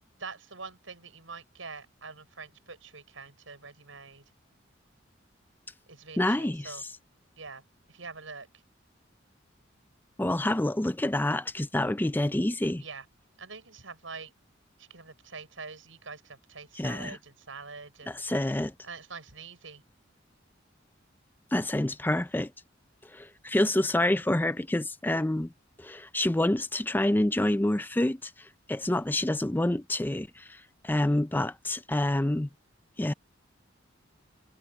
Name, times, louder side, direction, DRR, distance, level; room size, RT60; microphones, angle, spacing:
voice 1, 0.2-4.2 5.9-6.8 7.4-7.6 7.9-8.5 12.8-13.1 13.4-14.3 14.8-18.3 18.8-19.8, right 4 dB, 85° right, 6.5 m, -44 dB
voice 2, 6.2-6.8 10.2-12.8 16.8-17.2 18.1-18.7 21.5-22.5 23.1-25.5 25.8-32.5 33.0-33.1, left 1 dB, 10° left, 0.5 m, -27 dB
head